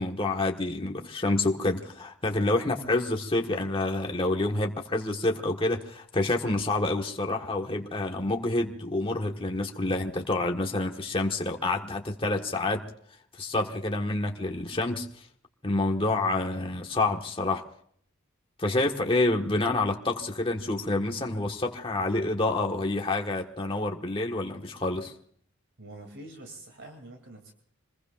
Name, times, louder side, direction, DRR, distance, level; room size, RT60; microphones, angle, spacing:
voice 1, 0.0-12.8 13.4-15.3 15.6-17.6 18.6-25.1, left 2 dB, 25° left, 1 dB, 1.4 m, -28 dB
voice 2, 25.8-27.5, right 2 dB, 60° right, 3 dB, 2.8 m, -46 dB
26.5 x 21.5 x 2.5 m, 0.62 s
head